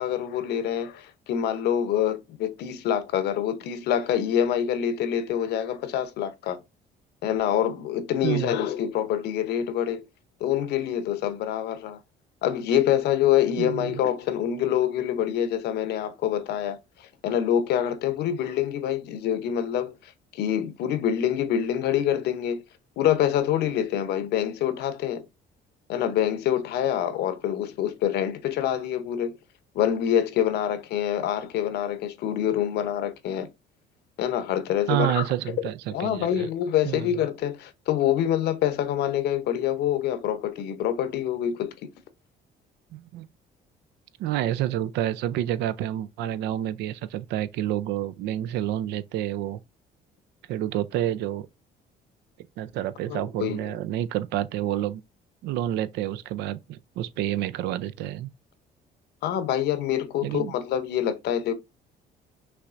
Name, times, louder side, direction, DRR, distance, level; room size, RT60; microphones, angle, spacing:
voice 1, 0.0-6.6 7.2-10.0 10.4-12.0 12.4-22.6 23.0-25.3 25.9-29.4 29.7-33.5 34.2-35.3 35.9-41.9 53.1-53.7 59.2-61.5, left 10 dB, 75° left, 0.9 m, -26 dB
voice 2, 8.2-8.6 13.6-14.0 34.9-36.5 36.8-37.1 42.9-43.3 44.2-49.6 50.5-51.5 52.6-55.0 55.4-58.3 60.2-60.5, right 12 dB, 85° right, 0.5 m, -29 dB
5.9 x 3.3 x 2.5 m
cardioid pair, 110°, 17 cm